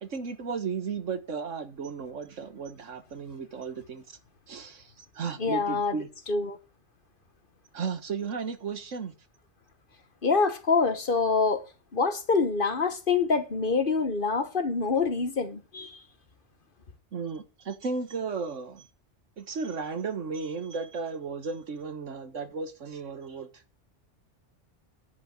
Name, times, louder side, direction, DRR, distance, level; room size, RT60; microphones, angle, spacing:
voice 1, 0.0-4.0 4.5-6.1 7.7-9.1 17.1-18.9 19.4-23.5, right 5 dB, 85° right, 1.8 m, -34 dB
voice 2, 5.4-6.0 6.3-6.6 10.2-11.6 11.9-16.0, left 4 dB, 45° left, 1.4 m, -26 dB
10.5 x 5.4 x 8.2 m
omnidirectional pair, 1.2 m